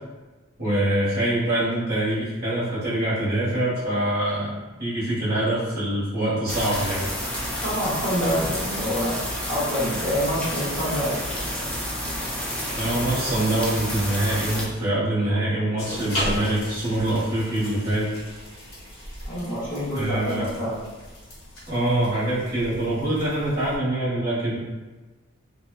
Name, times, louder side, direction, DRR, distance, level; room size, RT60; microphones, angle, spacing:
voice 1, 0.6-7.0 12.8-18.1 19.9-20.4 21.7-24.6, right 1 dB, 45° right, -9 dB, 1.0 m, -24 dB
sound 1, 6.5-14.6, equal, 5° left, 0.4 m, -30 dB
voice 2, 7.6-9.2 9.5-11.2 19.2-20.8, equal, 40° left, -11 dB, 1.2 m, -26 dB
sound 2, 15.8-23.8, equal, 80° left, 1.1 m, -36 dB
2.5 x 2.1 x 2.3 m, 1.2 s
head